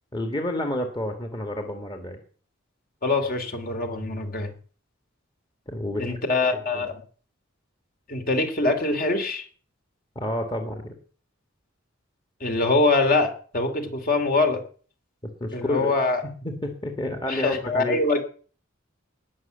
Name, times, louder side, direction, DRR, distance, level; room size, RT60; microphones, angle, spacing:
voice 1, 0.1-2.2 5.7-6.9 10.2-10.9 15.2-15.9 16.4-18.0, left 1 dB, 20° left, 4 dB, 1.9 m, -30 dB
voice 2, 3.0-4.5 6.0-7.0 8.1-9.4 12.4-14.6 15.5-16.2 17.3-18.2, left 3 dB, 45° left, 5 dB, 2.7 m, -24 dB
19.5 x 6.5 x 8.2 m, 0.44 s
head